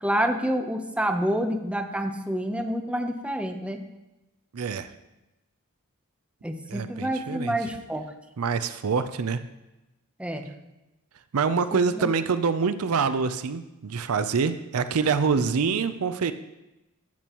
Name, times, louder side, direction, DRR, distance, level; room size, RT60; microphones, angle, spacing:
voice 1, 0.0-3.8 6.4-8.1 10.2-10.5 11.7-12.1, equal, 5° right, 5 dB, 0.7 m, -28 dB
voice 2, 4.5-4.9 6.7-7.6 8.4-9.4 11.3-16.3, right 5 dB, 70° right, 11 dB, 0.5 m, -25 dB
13.0 x 8.6 x 3.0 m, 1.0 s
head